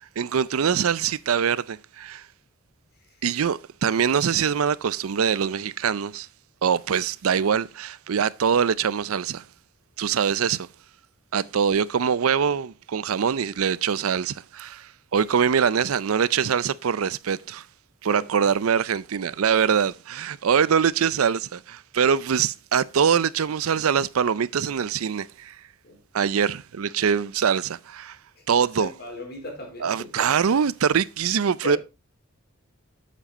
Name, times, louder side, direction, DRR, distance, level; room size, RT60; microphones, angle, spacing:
voice 1, 0.2-2.2 3.2-6.3 6.6-9.4 10.0-10.7 11.3-17.6 18.0-25.5 26.1-28.2 28.5-28.9 29.8-31.8, right 7 dB, 90° right, 0.5 m, -23 dB
voice 2, 28.7-30.4 31.6-31.8, left 1 dB, 50° left, 4.1 m, -36 dB
8.8 x 7.5 x 4.1 m
head